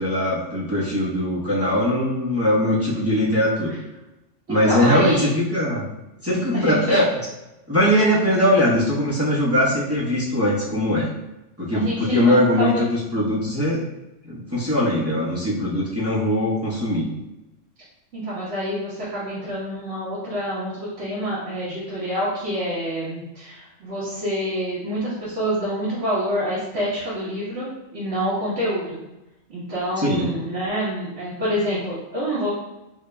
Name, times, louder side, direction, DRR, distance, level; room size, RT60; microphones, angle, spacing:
voice 1, 0.0-3.7 4.5-5.8 6.2-7.1 7.7-11.1 11.6-13.8 14.2-17.1 30.0-30.3, left 1 dB, 15° right, -8 dB, 0.9 m, -21 dB
voice 2, 4.5-5.3 6.5-7.0 11.7-12.8 18.1-29.0 29.5-32.5, equal, 65° right, -11 dB, 1.5 m, -27 dB
5.0 x 2.7 x 2.2 m, 0.97 s
omnidirectional pair, 1.3 m